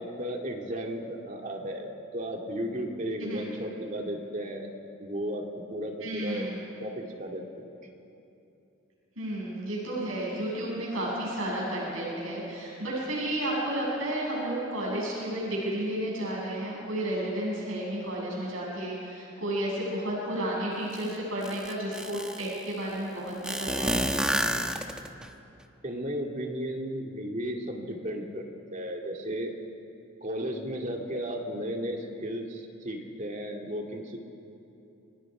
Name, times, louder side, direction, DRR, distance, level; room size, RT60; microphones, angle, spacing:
voice 1, 0.0-4.7 5.0-6.5 6.8-7.7 25.8-28.4 28.7-29.5 30.2-34.2, equal, 40° right, 1 dB, 2.4 m, -34 dB
voice 2, 6.0-6.6 9.2-24.0, right 1 dB, 85° right, -4 dB, 7.5 m, -32 dB
sound 1, 20.9-21.0 21.4-22.6 23.4-25.3, equal, 5° right, 1.0 m, -29 dB
30.0 x 24.5 x 5.0 m, 2.8 s
head